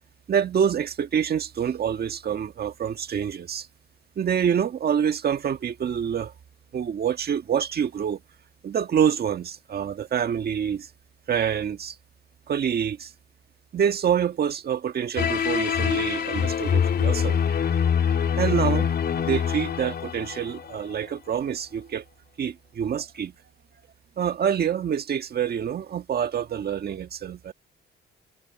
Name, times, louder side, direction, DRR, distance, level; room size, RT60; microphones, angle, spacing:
voice 1, 0.3-3.7 4.2-6.3 6.7-8.2 8.6-10.9 11.3-11.9 12.5-13.1 13.7-17.4 18.4-18.9 19.3-22.0 22.4-23.3 24.2-27.5, right 8 dB, 50° right, 1.6 m, -26 dB
sound 1, 15.2-20.9, left 7 dB, 55° left, 3.2 m, -24 dB
cardioid pair, 90°, 20 cm